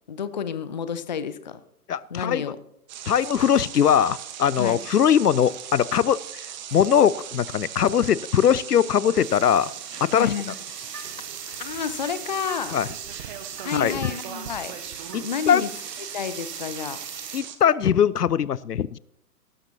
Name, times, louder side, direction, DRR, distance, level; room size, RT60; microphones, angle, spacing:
voice 1, 0.1-1.6 2.1-2.6 4.6-4.8 10.1-10.5 11.6-12.8 13.6-14.7 15.2-15.7 16.0-17.0, left 7 dB, 30° left, 14 dB, 0.5 m, -30 dB
voice 2, 1.9-2.4 3.1-6.2 6.7-9.7 10.0-10.3 12.7-12.9 13.7-14.0 15.1-15.6 17.3-19.0, left 8 dB, 75° left, 21 dB, 0.6 m, -21 dB
sound 1, 2.9-17.6, right 10 dB, 30° right, 1.2 m, -38 dB
sound 2, 9.2-17.4, right 5 dB, 85° right, 1.0 m, -42 dB
sound 3, 10.1-15.5, right 3 dB, 60° right, 2.5 m, -48 dB
17.0 x 12.5 x 2.8 m, 0.78 s
figure-of-eight pair, 130°, 47 cm